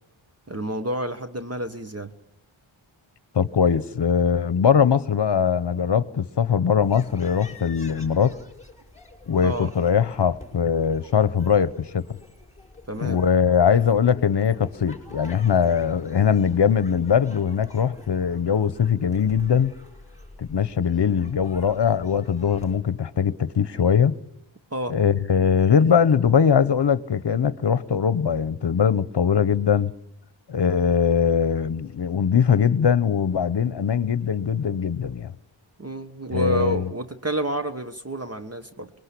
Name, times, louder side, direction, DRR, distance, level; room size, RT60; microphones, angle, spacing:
voice 1, 0.5-2.1 9.4-9.7 12.9-13.2 24.7-25.0 35.8-38.9, right 1 dB, 30° right, 1.3 m, -29 dB
voice 2, 3.3-8.4 9.3-12.0 13.0-19.7 20.4-24.1 24.9-29.9 30.5-35.3 36.3-36.9, left 7 dB, 55° left, 1.0 m, -21 dB
sound 1, 6.8-22.8, left 2 dB, 15° left, 6.0 m, -47 dB
26.0 x 21.5 x 8.4 m
wide cardioid pair, 90°, 49 cm